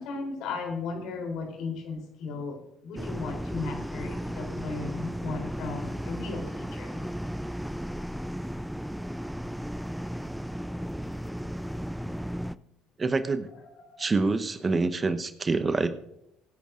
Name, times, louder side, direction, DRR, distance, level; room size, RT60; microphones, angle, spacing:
voice 1, 0.0-7.0 13.8-14.1, left 4 dB, 65° left, 3 dB, 3.6 m, -36 dB
sound 1, 3.0-12.6, equal, ahead, 0.5 m, -35 dB
voice 2, 13.0-13.5 14.0-15.9, right 3 dB, 30° right, 10 dB, 1.0 m, -26 dB
24.0 x 10.5 x 2.6 m, 0.80 s
hypercardioid pair, 55°, 0 cm